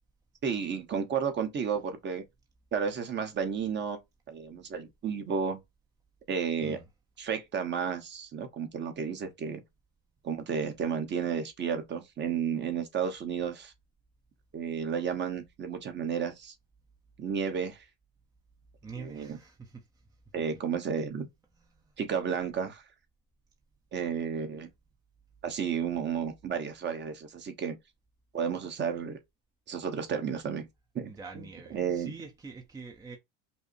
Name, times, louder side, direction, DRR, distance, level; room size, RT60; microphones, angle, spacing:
voice 1, 0.4-2.2 2.7-4.0 4.3-5.6 6.3-6.8 7.2-9.6 10.2-13.7 14.5-16.5 17.2-17.8 19.0-19.4 20.3-21.3 22.0-22.8 23.9-24.7 25.4-27.8 28.3-29.2 29.7-30.7 30.9-31.1 31.3-31.4 31.7-32.1, right 7 dB, 30° right, 1.0 m, -32 dB
voice 2, 18.8-19.9 20.4-20.5 21.7-22.0 31.0-33.2, right 4 dB, 10° right, 0.7 m, -45 dB
5.5 x 2.0 x 4.5 m
supercardioid pair, 120°, 36 cm